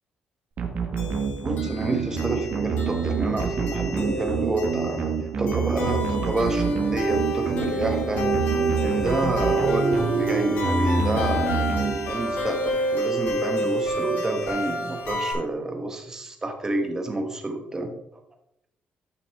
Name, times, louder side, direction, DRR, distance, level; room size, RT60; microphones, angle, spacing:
sound 1, 0.6-12.4, right 5 dB, 50° right, 1.4 m, -27 dB
sound 2, 1.0-15.3, right 1 dB, 80° left, 3.4 m, -28 dB
voice 1, 1.4-8.3 8.8-11.5 12.1-17.9, right 2 dB, 15° right, 5 dB, 1.2 m, -29 dB
11.0 x 6.0 x 3.5 m, 0.82 s
cardioid pair, 145°, 3 cm